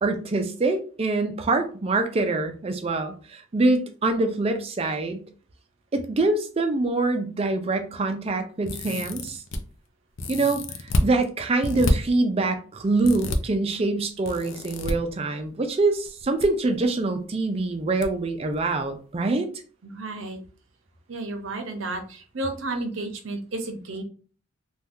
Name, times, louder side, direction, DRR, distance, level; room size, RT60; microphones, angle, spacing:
voice 1, 0.0-5.2 5.9-9.4 10.3-10.6 11.0-19.5, right 2 dB, 30° right, 6 dB, 0.4 m, -25 dB
sound 1, 8.6-9.6 10.2-11.1 11.6-11.9 13.0-13.4 14.2-14.9 16.1-16.5 16.7-16.8 18.0-18.1 18.5-18.6, left 1 dB, 70° left, 0.5 m, -27 dB
voice 2, 19.8-20.4 21.1-24.0, right 2 dB, 70° right, 5 dB, 0.7 m, -32 dB
2.7 x 2.2 x 3.4 m, 0.40 s
head